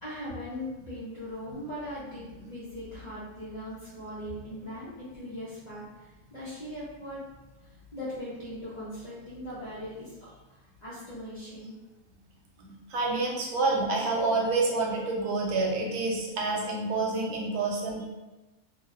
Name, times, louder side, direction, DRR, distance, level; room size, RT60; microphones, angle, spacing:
voice 1, 0.0-5.9 6.3-7.2 7.9-10.2 10.8-11.8 18.0-18.1, equal, 50° left, -11 dB, 0.5 m, -39 dB
voice 2, 12.6-18.0, right 3 dB, 85° right, -2 dB, 1.1 m, -28 dB
2.8 x 2.0 x 2.4 m, 1.1 s
omnidirectional pair, 1.6 m